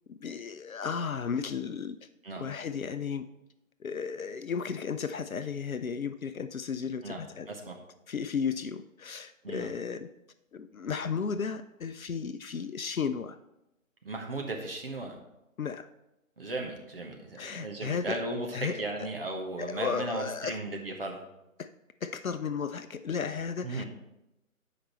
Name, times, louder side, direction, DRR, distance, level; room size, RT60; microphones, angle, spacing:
voice 1, 0.1-2.0 2.4-3.3 3.8-7.5 8.1-10.1 10.5-13.4 15.6-15.9 17.4-18.2 18.5-19.1 19.6-20.6 21.6-21.7 22.0-23.8, left 6 dB, 75° left, 11 dB, 0.6 m, -34 dB
voice 2, 14.0-15.2 16.4-21.2 23.6-23.8, right 2 dB, 45° right, 2 dB, 1.1 m, -36 dB
14.0 x 5.1 x 3.1 m, 0.90 s
figure-of-eight pair, 150°, 42 cm